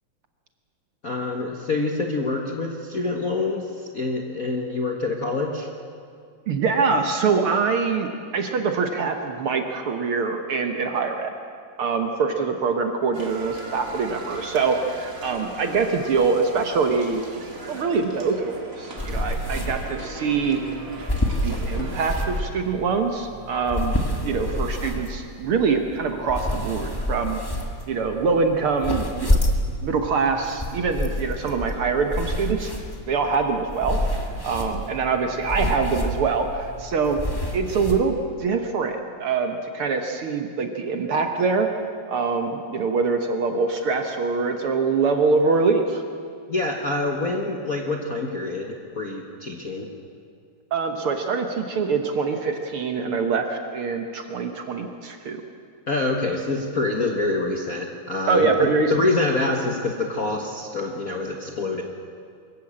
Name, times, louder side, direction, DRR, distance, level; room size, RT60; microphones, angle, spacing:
voice 1, 1.0-5.7 46.5-49.9 55.9-58.5 58.9-61.8, left 2 dB, 45° left, 1 dB, 1.2 m, -26 dB
voice 2, 6.5-11.3 11.8-17.2 17.7-20.6 21.4-23.9 24.2-27.4 27.9-29.4 29.8-32.7 33.1-34.0 34.4-37.2 37.5-41.7 42.1-46.0 50.7-55.4 58.3-58.9, right 4 dB, 60° right, 5 dB, 1.7 m, -24 dB
sound 1, 13.1-22.4, right 2 dB, 30° right, 2.2 m, -39 dB
sound 2, 19.0-38.0, left 1 dB, 15° left, 0.9 m, -29 dB
23.5 x 14.0 x 8.7 m, 2.2 s
omnidirectional pair, 3.3 m